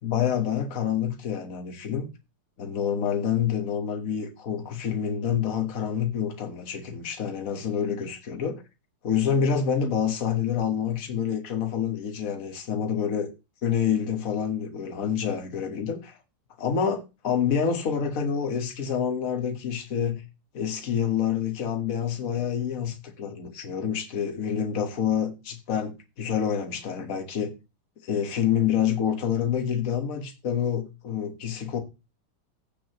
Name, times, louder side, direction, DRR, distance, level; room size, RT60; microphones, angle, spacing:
voice 1, 0.0-2.1 2.6-8.6 9.0-13.3 13.6-16.2 16.6-20.2 20.5-27.5 28.0-31.8, left 8 dB, 45° left, 1.6 m, -27 dB
15.5 x 6.2 x 3.0 m
omnidirectional pair, 2.4 m